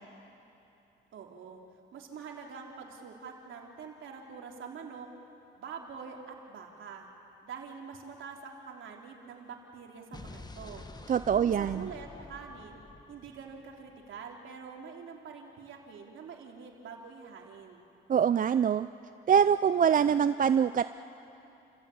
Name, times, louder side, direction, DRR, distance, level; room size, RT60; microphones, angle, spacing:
voice 1, 1.1-1.6 1.9-5.1 5.6-7.1 7.4-10.8 11.3-17.9, right 5 dB, 70° right, 0 dB, 3.6 m, -45 dB
Explosion, 10.1-14.2, left 2 dB, 20° left, 1.3 m, -48 dB
voice 2, 11.1-11.9 18.1-18.9 19.3-20.8, right 8 dB, 40° right, 12 dB, 0.5 m, -24 dB
30.0 x 15.0 x 8.7 m, 3.0 s
cardioid pair, 90°, 21 cm